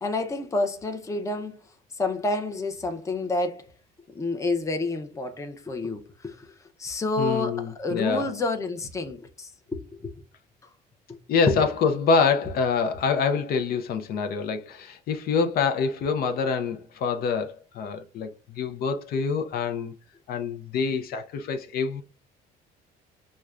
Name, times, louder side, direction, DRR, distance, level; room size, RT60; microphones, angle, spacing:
voice 1, 0.0-1.7 2.0-3.7 4.1-10.1 11.5-11.6, left 3 dB, 20° left, 0.6 m, -29 dB
voice 2, 7.2-8.3 11.3-19.9 20.3-22.0, left 5 dB, 65° left, 0.5 m, -26 dB
6.1 x 2.2 x 2.4 m
cardioid pair, 110°, 17 cm